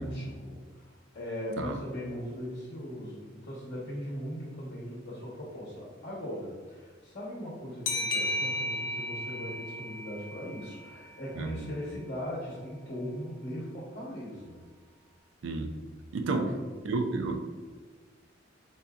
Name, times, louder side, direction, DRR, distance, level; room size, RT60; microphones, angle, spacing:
voice 1, 0.0-14.6 16.4-16.7, equal, 55° left, 0.9 m, -39 dB
sound 1, 7.9-11.2, left 1 dB, 75° left, 0.4 m, -34 dB
voice 2, 16.1-16.5 16.9-17.4, right 3 dB, 70° right, 0.4 m, -30 dB
4.5 x 2.6 x 2.3 m
head